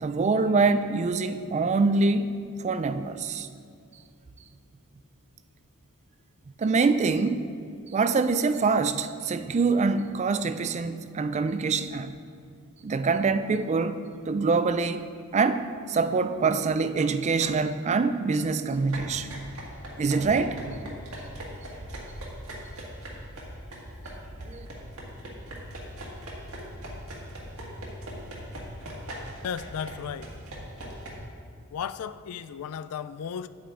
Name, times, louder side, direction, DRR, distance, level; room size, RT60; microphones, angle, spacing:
voice 1, 0.0-3.5 6.6-7.5 7.9-12.1 12.8-14.0 14.3-19.3 20.0-20.6 24.5-24.7, right 4 dB, 30° right, 11 dB, 0.3 m, -25 dB
sound 1, 18.7-31.1, equal, 70° right, 1.7 m, -40 dB
voice 2, 29.4-30.3 31.7-33.5, left 7 dB, 75° left, 14 dB, 0.3 m, -34 dB
8.9 x 8.7 x 3.7 m, 2.3 s
head